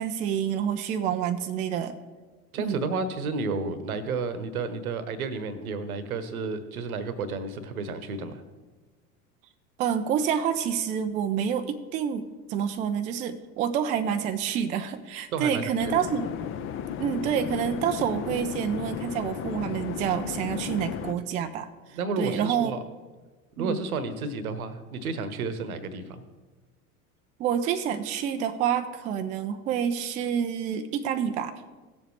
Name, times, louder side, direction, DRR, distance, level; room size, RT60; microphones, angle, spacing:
voice 1, 0.0-2.0 2.6-2.8 9.8-12.2 12.5-16.3 17.0-22.7 23.6-23.8 27.4-31.6, right 8 dB, 20° right, 8 dB, 0.3 m, -28 dB
voice 2, 2.5-8.4 15.3-16.0 21.9-22.8 23.6-26.2, right 4 dB, 65° right, 12 dB, 1.0 m, -31 dB
sound 1, 15.8-21.1, left 9 dB, 30° left, 0.6 m, -34 dB
17.0 x 7.2 x 3.2 m, 1.3 s
figure-of-eight pair, 70°, 46 cm